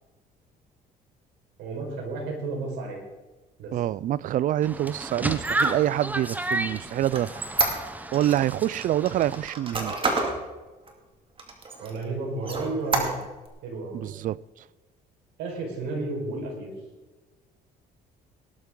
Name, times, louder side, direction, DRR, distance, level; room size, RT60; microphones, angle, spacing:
voice 1, 1.6-3.0 3.6-3.7 11.8-13.2 13.6-14.0 15.4-16.7, right 3 dB, 85° right, 4.9 m, -32 dB
voice 2, 3.7-7.3 8.1-9.9 13.9-14.4, right 12 dB, 50° right, 0.4 m, -26 dB
sound 1, 4.6-9.5, right 2 dB, 10° right, 0.9 m, -32 dB
Squeak, 5.3-8.4 8.8-10.4 10.9-11.0 11.4-12.0 12.4-13.5, right 3 dB, 30° right, 2.5 m, -29 dB
18.5 x 11.5 x 3.9 m
cardioid pair, 110°, 17 cm